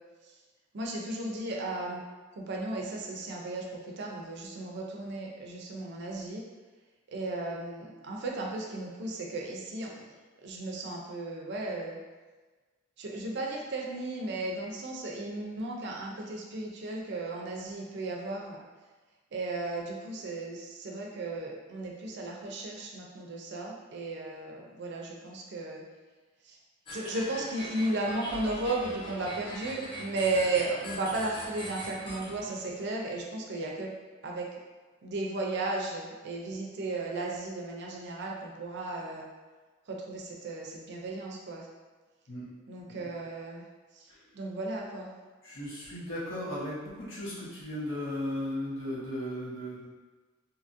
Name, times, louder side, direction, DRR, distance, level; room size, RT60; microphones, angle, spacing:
voice 1, 0.7-2.0 2.3-6.4 7.1-10.1 10.4-12.0 13.0-18.6 19.3-25.8 26.4-26.6 26.9-33.9 34.2-34.5 35.0-39.3 39.9-41.7 42.7-43.6 43.9-44.1 44.3-45.1, right 2 dB, 60° right, -1 dB, 0.5 m, -35 dB
sound 1, 26.9-32.9, equal, 25° left, 0.5 m, -42 dB
voice 2, 45.4-49.9, left 1 dB, 70° left, -8 dB, 1.0 m, -36 dB
2.8 x 2.4 x 2.5 m, 1.3 s
head